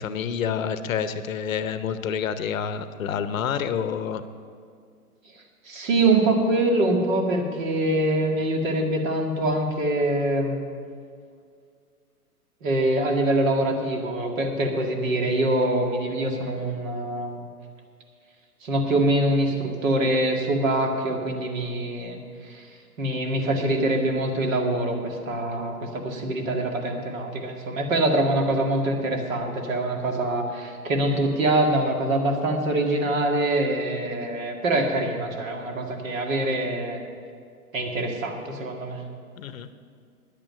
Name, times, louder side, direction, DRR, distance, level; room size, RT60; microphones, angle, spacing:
voice 1, 0.0-4.2 39.4-39.8, left 7 dB, 60° left, 12 dB, 0.8 m, -28 dB
voice 2, 5.6-10.6 12.6-17.5 18.6-22.2 22.4-22.7 23.0-37.0 37.7-39.0, right 1 dB, 55° right, 3 dB, 2.1 m, -24 dB
10.5 x 8.7 x 7.6 m, 2.2 s
figure-of-eight pair, 120°, 46 cm